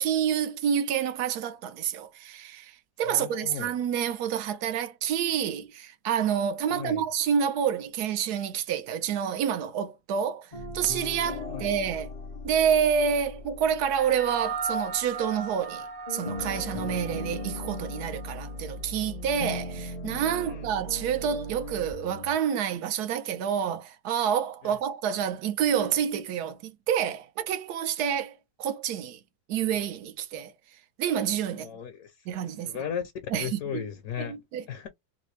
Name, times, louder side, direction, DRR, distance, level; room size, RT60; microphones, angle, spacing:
voice 1, 0.0-12.1 12.4-29.2 29.5-31.7 32.3-32.7 33.3-33.9 34.2-34.6, right 8 dB, 85° right, 1.2 m, -28 dB
voice 2, 3.1-3.7 6.7-7.0 11.5-11.7 20.4-20.6 24.6-24.8 31.5-32.3 32.6-33.0 33.3-34.4 34.7-34.9, left 8 dB, 70° left, 1.0 m, -36 dB
sound 1, 10.5-15.8 16.1-22.3, left 2 dB, 45° left, 0.5 m, -38 dB
sound 2, 13.9-18.6, right 4 dB, 55° right, 0.6 m, -37 dB
3.3 x 2.5 x 3.1 m
omnidirectional pair, 1.6 m